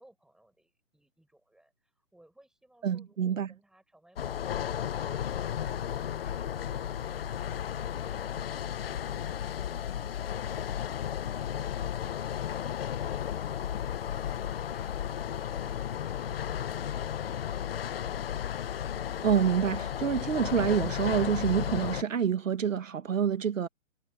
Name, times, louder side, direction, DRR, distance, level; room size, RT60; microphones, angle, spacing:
voice 1, 0.0-12.1 12.4-13.5 14.1-18.0, right 1 dB, ahead, 7.6 m, -62 dB
voice 2, 2.8-3.5 19.2-23.7, right 8 dB, 65° right, 1.9 m, -27 dB
sound 1, 4.2-22.0, left 9 dB, 45° left, 1.2 m, -34 dB
hypercardioid pair, 155°, 41 cm